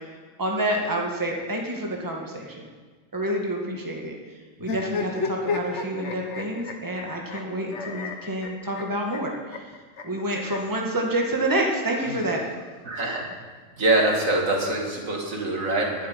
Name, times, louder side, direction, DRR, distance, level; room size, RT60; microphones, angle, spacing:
voice 1, 0.4-2.7 3.1-4.1 4.6-9.6 10.0-12.4, right 1 dB, 15° right, 0 dB, 1.7 m, -28 dB
sound 1, 4.6-10.8 11.8-12.9, left 4 dB, 60° left, 1.4 m, -33 dB
voice 2, 12.8-13.3 13.8-16.1, right 2 dB, 80° right, -1 dB, 2.7 m, -24 dB
11.5 x 7.7 x 9.5 m, 1.4 s
omnidirectional pair, 1.4 m